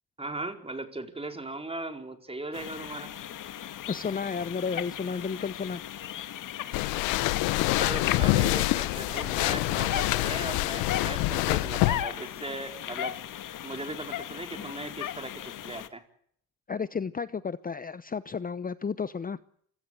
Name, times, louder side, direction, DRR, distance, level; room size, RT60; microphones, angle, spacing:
voice 1, 0.2-3.1 7.8-13.2 13.6-16.0, right 2 dB, 15° right, 6 dB, 4.5 m, -38 dB
sound 1, 2.5-15.9, left 11 dB, 65° left, 2.1 m, -37 dB
voice 2, 3.9-5.8 14.6-14.7 16.7-19.4, left 5 dB, 25° left, 16 dB, 0.9 m, -32 dB
sound 2, 6.7-12.0, left 19 dB, 90° left, 1.0 m, -26 dB
28.5 x 16.5 x 8.0 m, 0.67 s
supercardioid pair, 75°, 35 cm